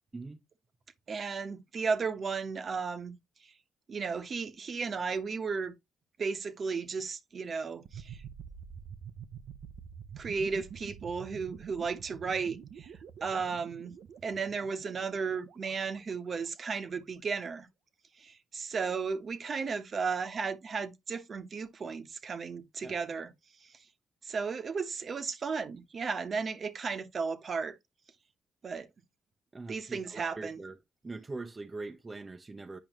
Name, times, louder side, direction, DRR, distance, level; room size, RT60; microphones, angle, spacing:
voice 1, 1.1-3.2 3.9-5.7 6.2-8.2 10.2-12.9 13.2-13.9 14.2-17.7 18.2-23.3 24.2-27.7 28.6-28.9 29.7-30.6, right 5 dB, 45° right, 1.1 m, -34 dB
sound 1, 7.8-16.7, right 7 dB, 70° right, 0.7 m, -48 dB
voice 2, 29.5-30.8 31.0-32.8, right 3 dB, 25° right, 0.7 m, -42 dB
9.0 x 5.1 x 3.0 m
cardioid pair, 90°, 0 cm